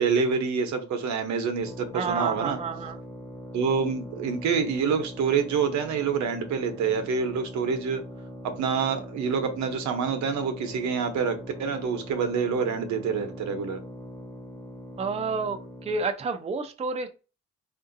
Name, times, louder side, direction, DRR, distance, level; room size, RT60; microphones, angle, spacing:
voice 1, 0.0-2.6 3.5-8.0 8.4-13.8, right 6 dB, 70° right, 7 dB, 0.8 m, -27 dB
sound 1, 1.6-16.1, equal, 5° left, 0.9 m, -42 dB
voice 2, 1.9-3.0 15.0-17.1, right 4 dB, 20° right, 7 dB, 0.5 m, -30 dB
3.6 x 2.6 x 2.6 m, 0.32 s
cardioid pair, 85°, 30 cm